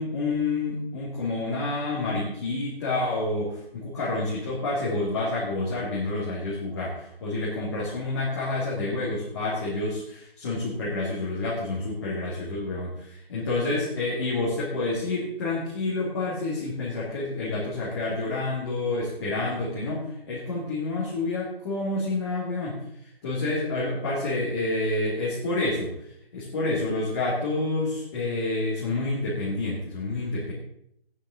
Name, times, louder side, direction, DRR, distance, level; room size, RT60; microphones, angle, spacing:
voice 1, 0.0-22.8 23.2-25.9 26.3-30.5, left 2 dB, 25° left, -7 dB, 2.8 m, -28 dB
15.0 x 9.8 x 3.9 m, 0.72 s
figure-of-eight pair, 155°, 31 cm